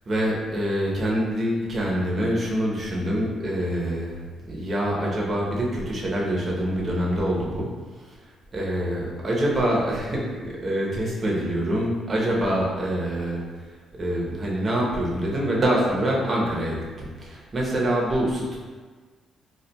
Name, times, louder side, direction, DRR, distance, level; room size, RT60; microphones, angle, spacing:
voice 1, 0.1-4.2 4.5-7.7 8.0-8.2 8.5-13.4 13.9-18.6, right 1 dB, 35° right, -4 dB, 0.8 m, -25 dB
4.1 x 2.3 x 2.2 m, 1.4 s
cardioid pair, 90°, 0 cm